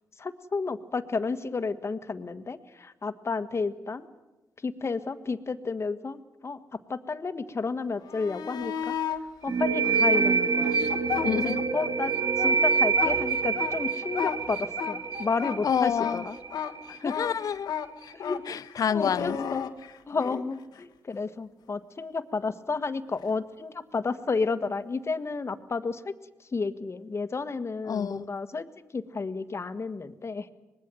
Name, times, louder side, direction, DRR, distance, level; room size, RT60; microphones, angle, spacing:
voice 1, 0.2-4.1 4.6-10.8 11.2-16.4 16.9-17.1 18.1-18.4 18.9-19.7 20.1-26.1 26.4-28.7 28.9-30.5, left 4 dB, 40° left, 1.6 m, -32 dB
sound 1, 8.0-9.2 9.8-11.9 12.2-20.4 23.2-23.3, left 8 dB, 75° left, 1.5 m, -34 dB
sound 2, 9.5-16.9, right 5 dB, 55° right, 1.3 m, -26 dB
voice 2, 11.2-11.6 15.6-16.2 17.0-17.7 18.5-19.4 27.9-28.3, left 8 dB, 60° left, 0.7 m, -28 dB
25.0 x 20.0 x 7.8 m
supercardioid pair, 50°, 7 cm